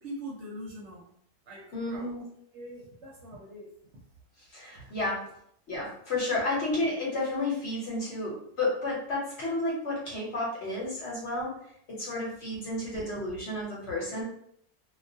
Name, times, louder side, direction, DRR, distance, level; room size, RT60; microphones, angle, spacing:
voice 1, 0.0-1.1 1.5-2.3 2.5-3.7 4.7-5.0 12.9-13.0, right 1 dB, 60° right, -4 dB, 0.8 m, -43 dB
voice 2, 1.7-2.2 4.5-5.2 5.7-11.6 11.9-14.2, left 2 dB, 55° left, -5 dB, 1.0 m, -31 dB
2.3 x 2.3 x 2.6 m, 0.68 s
omnidirectional pair, 1.5 m